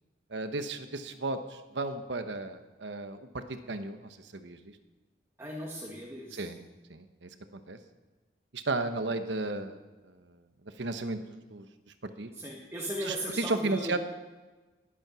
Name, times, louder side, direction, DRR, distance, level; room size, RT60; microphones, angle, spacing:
voice 1, 0.3-4.8 6.3-6.6 6.9-7.8 8.5-10.4 10.8-11.7 12.0-12.3 13.0-14.0, right 2 dB, 70° right, 8 dB, 1.1 m, -34 dB
voice 2, 5.4-6.5 12.4-14.0, equal, 15° right, -2 dB, 1.4 m, -37 dB
19.5 x 8.7 x 6.2 m, 1.2 s
head